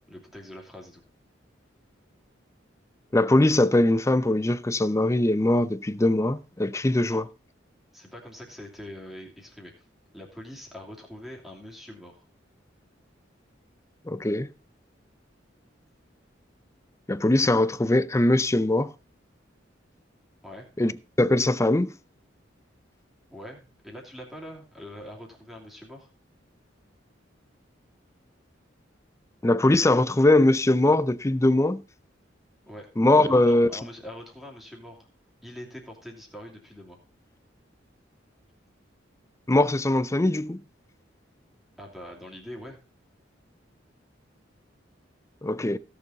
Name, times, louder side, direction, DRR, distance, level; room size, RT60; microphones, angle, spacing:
voice 1, 0.1-1.0 7.0-7.2 7.9-9.8 10.1-12.2 20.4-20.7 23.3-26.1 32.6-32.9 33.2-35.1 35.4-37.0 41.8-42.8, equal, ahead, 2.8 m, -43 dB
voice 2, 3.1-7.2 14.1-14.5 17.1-18.9 20.8-20.9 21.2-21.9 29.4-31.8 33.0-33.7 39.5-40.6 45.4-45.8, left 1 dB, 15° left, 0.5 m, -21 dB
16.5 x 6.9 x 4.0 m
head